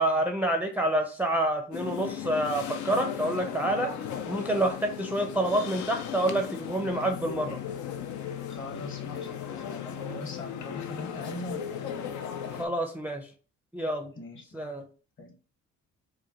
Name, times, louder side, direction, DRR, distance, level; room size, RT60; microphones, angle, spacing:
voice 1, 0.0-3.9 4.2-7.6 12.6-13.3 13.7-14.1 14.5-14.8, right 1 dB, 5° right, 4 dB, 0.5 m, -28 dB
sound 1, 1.7-12.7, left 9 dB, 75° left, 0.6 m, -36 dB
voice 2, 8.5-12.2 14.1-14.5 15.2-15.3, left 1 dB, 40° left, 4 dB, 1.2 m, -41 dB
4.9 x 2.2 x 2.9 m, 0.38 s
cardioid pair, 90°, 30 cm